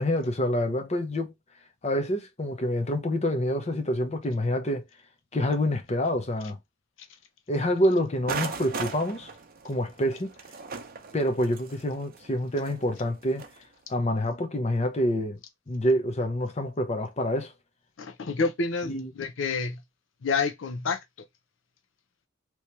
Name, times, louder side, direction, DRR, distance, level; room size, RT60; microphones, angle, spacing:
voice 1, 0.0-1.3 1.8-4.8 5.3-6.6 7.5-9.3 9.6-10.3 11.1-13.4 13.9-15.4 15.7-17.5 18.8-19.1, left 1 dB, 35° left, 0.7 m, -27 dB
sound 1, 8.3-13.6, right 5 dB, 50° right, 0.7 m, -38 dB
voice 2, 18.0-18.9 19.2-19.8 20.2-21.0, left 4 dB, 70° left, 0.6 m, -28 dB
3.1 x 2.9 x 3.1 m
head